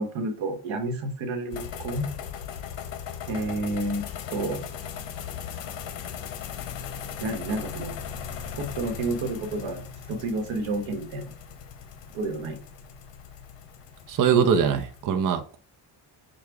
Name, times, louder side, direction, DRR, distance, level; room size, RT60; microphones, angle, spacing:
voice 1, 0.0-2.1 3.3-4.7 7.2-8.0 8.6-11.3 12.1-12.6, right 2 dB, 85° right, 1.2 m, -30 dB
sound 1, 1.5-15.0, left 8 dB, 70° left, 0.8 m, -38 dB
voice 2, 14.1-15.6, right 7 dB, 45° right, 0.7 m, -22 dB
6.5 x 2.4 x 3.4 m
cardioid pair, 110°, 46 cm